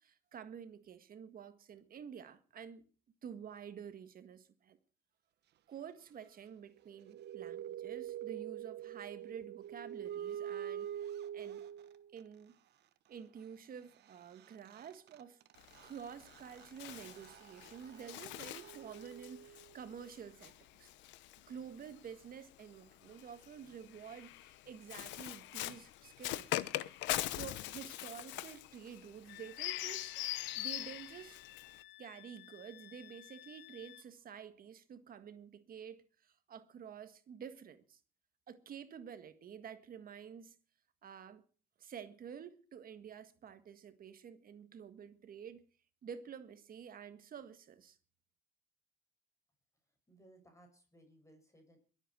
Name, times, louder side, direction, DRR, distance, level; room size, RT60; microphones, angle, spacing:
voice 1, 0.0-2.9 3.2-4.8 5.7-11.6 12.1-12.5 13.1-15.4 15.8-20.5 20.8-20.9 21.5-26.6 27.3-31.4 32.0-38.0 38.5-40.5 41.0-41.4 41.8-45.6 46.0-48.0, right 7 dB, 55° right, 1.7 m, -50 dB
sound 1, 6.8-12.2 14.1-14.2 14.4-19.9, right 10 dB, 70° right, 1.3 m, -46 dB
Bird, 15.6-22.1 23.0-31.8, left 16 dB, 90° left, 0.9 m, -42 dB
Wind instrument woodwind instrument, 29.3-34.1, left 13 dB, 70° left, 1.1 m, -56 dB
voice 2, 50.1-51.8, right 1 dB, 15° left, 6.7 m, -62 dB
22.0 x 8.2 x 6.2 m
cardioid pair, 100°, 18 cm